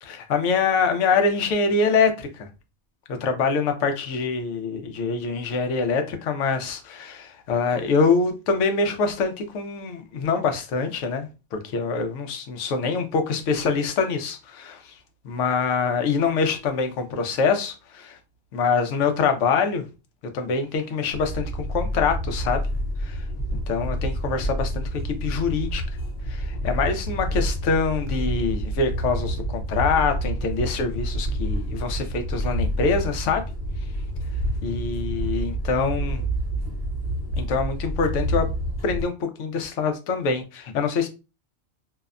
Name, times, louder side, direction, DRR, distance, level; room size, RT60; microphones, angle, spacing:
voice 1, 0.0-2.5 3.2-14.9 15.2-18.2 18.5-19.9 20.3-22.6 23.0-23.2 23.7-25.8 26.3-33.4 34.6-36.2 37.4-38.5 38.8-41.1, left 5 dB, 80° left, 0.9 m, -25 dB
sound 1, 21.1-39.0, equal, 65° left, 1.2 m, -28 dB
2.6 x 2.1 x 2.4 m
omnidirectional pair, 1.3 m